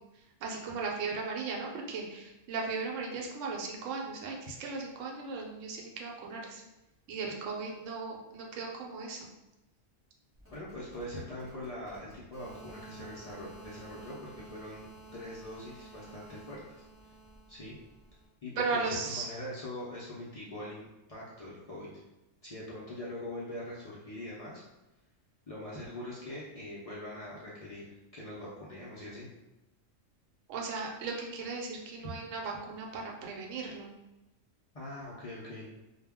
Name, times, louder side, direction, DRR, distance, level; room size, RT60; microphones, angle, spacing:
voice 1, 0.4-6.6 7.1-9.3 18.6-19.3 30.5-33.9, right 4 dB, 75° right, -1 dB, 0.9 m, -37 dB
sound 1, 10.4-18.3, right 2 dB, 10° right, 0.9 m, -52 dB
voice 2, 10.5-16.6 17.5-17.8 18.4-21.9 22.4-24.6 25.5-29.3 34.7-35.7, left 1 dB, 65° left, -7 dB, 0.3 m, -42 dB
2.2 x 2.1 x 3.4 m, 0.98 s
omnidirectional pair, 1.3 m